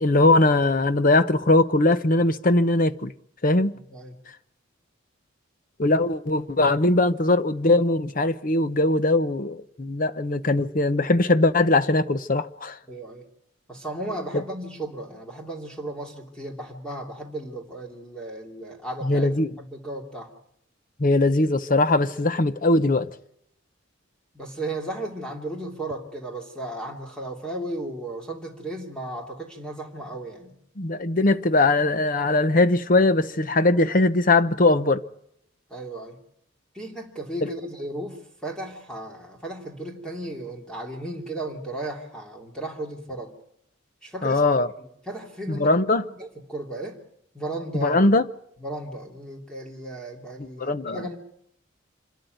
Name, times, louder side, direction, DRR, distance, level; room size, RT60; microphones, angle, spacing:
voice 1, 0.0-3.1 3.4-3.8 5.8-12.8 14.3-14.4 19.0-19.5 21.0-23.1 30.8-35.0 44.2-44.7 45.5-46.0 47.7-48.3 50.4-51.1, left 2 dB, 40° left, 0.9 m, -20 dB
voice 2, 12.9-13.2 13.7-19.3 19.6-20.3 24.3-30.6 35.7-36.2 36.7-43.4 44.0-44.4 45.1-45.8 46.2-47.0 47.3-48.0 48.6-51.2, right 1 dB, 5° left, 2.8 m, -35 dB
26.5 x 13.0 x 9.4 m
head